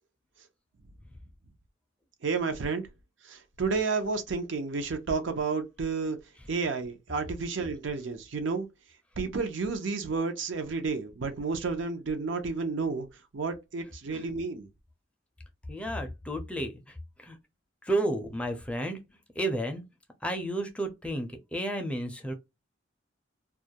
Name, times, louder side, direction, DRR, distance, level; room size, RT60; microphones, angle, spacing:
voice 1, 2.2-2.8 3.3-6.2 6.5-8.7 9.2-13.1 13.3-14.7, right 4 dB, 70° right, 0.5 m, -31 dB
voice 2, 15.7-16.7 17.2-17.4 17.9-19.0 19.4-19.8 20.2-22.3, right 1 dB, 5° left, 0.4 m, -31 dB
2.3 x 2.1 x 2.7 m
head